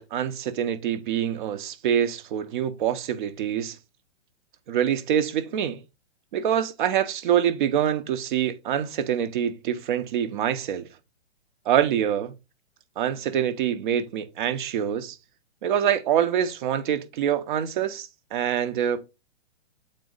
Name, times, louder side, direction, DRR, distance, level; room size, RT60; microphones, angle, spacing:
voice 1, 0.0-3.8 4.7-5.8 6.3-10.9 11.6-12.3 13.0-15.2 15.6-19.1, right 9 dB, 45° right, 1.0 m, -25 dB
7.7 x 4.3 x 4.0 m
hypercardioid pair, 140°, 34 cm